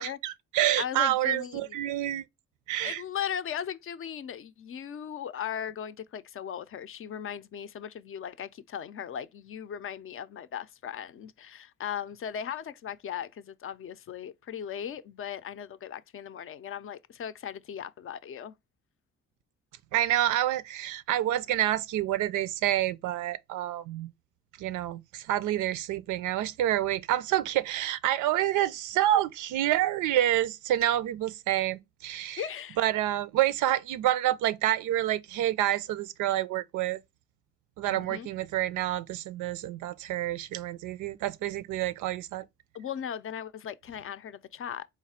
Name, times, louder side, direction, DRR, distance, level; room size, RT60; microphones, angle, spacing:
voice 1, 0.0-2.2 2.7-3.0 19.9-24.1 24.6-32.4 32.8-37.0 37.8-42.5, right 13 dB, 85° right, 0.5 m, -28 dB
voice 2, 0.8-1.8 2.8-18.5 32.4-32.8 37.9-38.3 42.7-44.9, left 9 dB, 45° left, 0.5 m, -38 dB
4.1 x 2.4 x 4.1 m
cardioid pair, 90°, 30 cm